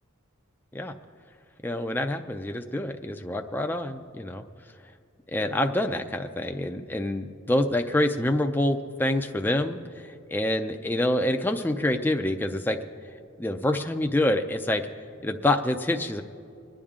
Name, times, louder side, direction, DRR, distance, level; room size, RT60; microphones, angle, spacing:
voice 1, 1.6-4.4 5.3-12.8 13.4-14.8 15.2-16.2, left 1 dB, 10° left, 4 dB, 0.5 m, -26 dB
26.0 x 10.0 x 3.7 m, 2.3 s
head